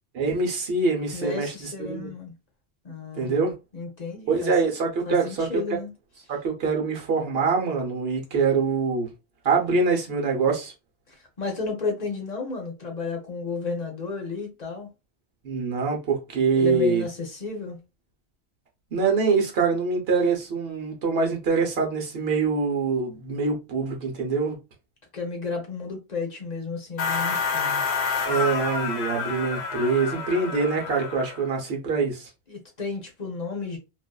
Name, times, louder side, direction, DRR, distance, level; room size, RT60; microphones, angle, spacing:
voice 1, 0.1-2.1 3.2-3.5 4.3-5.5 6.3-9.1 9.4-10.7 15.4-17.0 18.9-24.5 28.3-32.3, right 4 dB, 65° right, 1.0 m, -24 dB
voice 2, 1.1-2.3 2.8-4.5 5.1-5.9 11.1-14.9 16.5-17.8 25.1-27.8 32.5-33.8, left 4 dB, 45° left, 0.8 m, -32 dB
sound 1, 27.0-31.5, left 5 dB, 85° left, 0.9 m, -28 dB
2.5 x 2.4 x 2.2 m
omnidirectional pair, 1.1 m